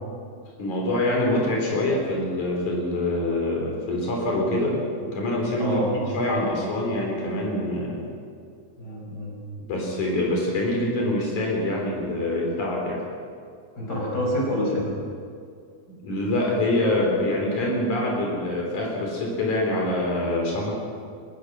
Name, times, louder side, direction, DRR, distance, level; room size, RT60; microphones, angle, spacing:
voice 1, 0.6-8.1 9.7-13.0 16.0-20.7, left 1 dB, 75° left, -1 dB, 5.0 m, -25 dB
voice 2, 5.6-5.9 8.8-9.4 13.8-14.9, equal, 30° left, -2 dB, 6.0 m, -27 dB
24.0 x 19.0 x 6.2 m, 2.2 s
omnidirectional pair, 3.5 m